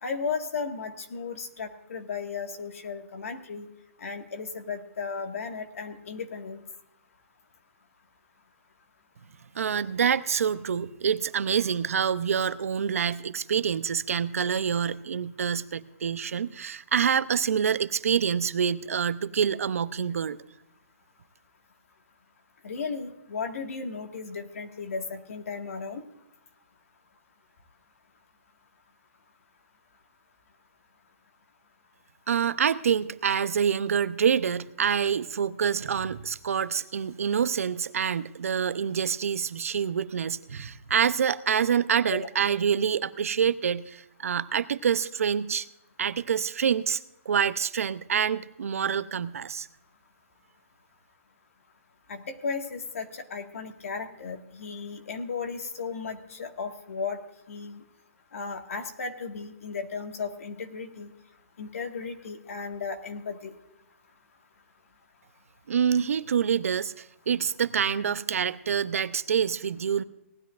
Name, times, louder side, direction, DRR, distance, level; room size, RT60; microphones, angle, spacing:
voice 1, 0.0-3.7 4.0-6.6 22.6-26.0 42.1-42.3 52.1-57.2 57.5-57.8 58.3-61.1 61.6-63.5, left 5 dB, 75° left, 4 dB, 1.9 m, -35 dB
voice 2, 9.5-20.4 32.3-45.7 46.0-49.7 65.7-70.0, right 7 dB, 85° right, 14 dB, 0.7 m, -26 dB
18.5 x 12.5 x 2.5 m, 0.84 s
hypercardioid pair, 180°, 8 cm